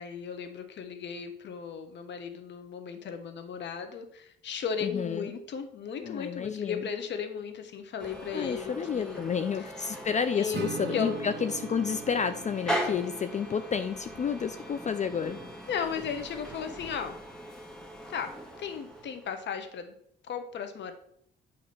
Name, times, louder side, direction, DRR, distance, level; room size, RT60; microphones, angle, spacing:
voice 1, 0.0-9.3 9.9-10.0 10.3-11.2 15.7-17.2 18.1-18.3 18.6-19.9 20.2-20.9, left 7 dB, 65° left, 7 dB, 1.0 m, -36 dB
voice 2, 4.8-5.3 6.0-6.9 8.3-15.4, left 6 dB, 35° left, 10 dB, 0.4 m, -30 dB
sound 1, 8.0-19.4, equal, 5° left, 1.6 m, -40 dB
Acoustic guitar / Strum, 10.5-16.0, right 7 dB, 55° right, 0.8 m, -43 dB
8.7 x 3.0 x 5.9 m, 0.69 s
cardioid pair, 90°, 20 cm